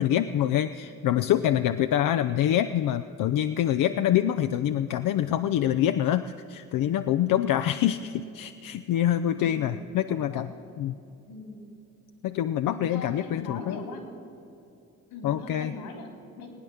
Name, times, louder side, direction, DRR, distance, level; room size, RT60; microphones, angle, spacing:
voice 1, 0.0-10.5 10.8-11.0 12.2-13.8 15.2-15.7, left 11 dB, 60° left, 10 dB, 0.6 m, -25 dB
voice 2, 7.6-8.2 9.3-10.7 11.2-11.7 12.7-14.1 15.1-16.5, left 3 dB, 75° left, 3 dB, 3.2 m, -42 dB
19.5 x 9.4 x 7.1 m, 2.7 s
hypercardioid pair, 50°, 38 cm